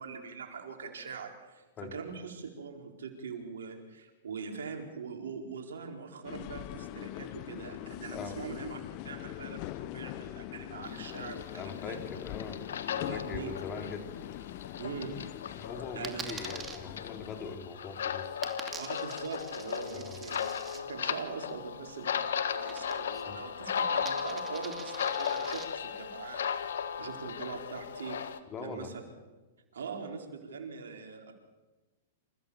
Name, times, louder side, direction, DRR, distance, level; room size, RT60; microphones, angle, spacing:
voice 1, 0.0-1.6 1.9-8.8 9.0-12.0 13.1-13.5 14.8-15.1 15.9-16.3 18.8-20.4 20.7-26.4 27.0-28.9 29.7-31.3, right 5 dB, 80° right, 3 dB, 4.4 m, -42 dB
sound 1, 6.2-17.6, left 16 dB, 45° left, 0.8 m, -42 dB
sound 2, 10.8-28.4, left 7 dB, 80° left, 1.4 m, -36 dB
voice 2, 11.5-12.6 13.0-14.1 15.6-18.4 19.9-20.2 23.1-23.4 28.5-28.9, left 5 dB, 25° left, 5 dB, 3.6 m, -42 dB
Coin (dropping), 16.0-16.8 18.4-20.8 22.7-23.3 23.6-25.7, right 6 dB, 15° right, 2.7 m, -44 dB
28.0 x 15.5 x 7.2 m, 1.2 s
hypercardioid pair, 125°, 0 cm